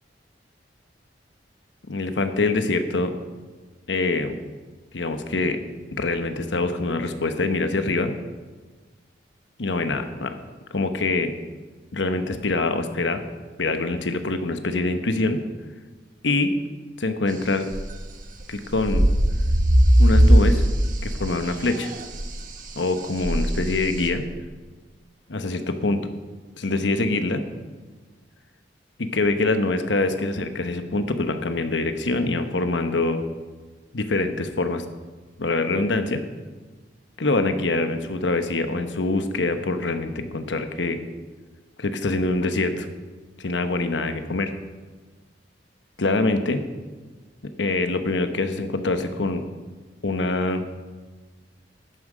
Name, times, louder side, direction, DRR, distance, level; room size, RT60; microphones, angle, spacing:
voice 1, 1.9-3.1 3.9-4.3 4.9-5.6 5.9-8.1 9.6-10.3 10.7-11.3 11.9-13.2 13.6-15.4 16.2-16.5 17.0-17.7 18.5-19.1 20.0-20.6 21.0-21.9 22.8-24.2 25.3-26.0 26.6-27.4 29.0-33.2 33.9-34.8 35.4-36.2 37.2-41.0 41.8-42.9 43.4-44.5 46.0-46.6 47.6-49.4 50.0-50.6, left 2 dB, 75° left, 8 dB, 1.0 m, -24 dB
sound 1, 17.7-18.5 18.7-21.2 21.5-22.3 23.2-24.1, equal, 50° right, 1.2 m, -19 dB
12.0 x 9.8 x 5.1 m, 1.3 s
head